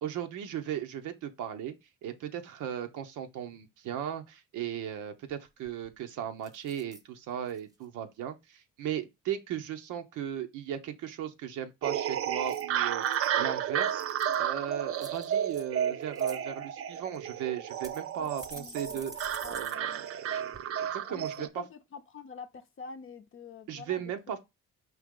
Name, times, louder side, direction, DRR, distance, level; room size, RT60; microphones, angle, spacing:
voice 1, 0.0-1.7 2.0-14.0 14.4-21.6 23.7-24.4, right 9 dB, 90° right, 0.8 m, -37 dB
sound 1, 5.6-6.0 6.4-7.0 7.5-7.8 12.3-13.3 13.8-14.5 15.0-15.6 16.0-16.4 17.1-17.2 17.8-19.8 20.1-20.2 20.5-20.6, right 1 dB, 10° right, 0.7 m, -48 dB
sound 2, 11.8-21.5, right 9 dB, 50° right, 0.5 m, -32 dB
voice 2, 18.2-19.0 19.4-20.0 21.1-24.4, left 5 dB, 45° left, 0.6 m, -47 dB
5.0 x 2.9 x 3.6 m
cardioid pair, 90°, 30 cm